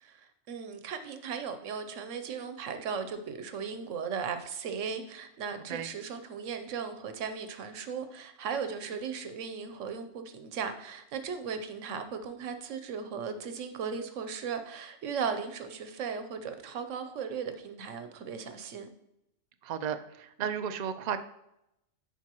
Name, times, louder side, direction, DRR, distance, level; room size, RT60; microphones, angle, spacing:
voice 1, 0.0-18.9, right 6 dB, 85° right, 8 dB, 1.1 m, -37 dB
voice 2, 19.6-21.2, right 8 dB, 65° right, 9 dB, 0.4 m, -34 dB
10.5 x 4.4 x 2.9 m, 0.83 s
omnidirectional pair, 1.3 m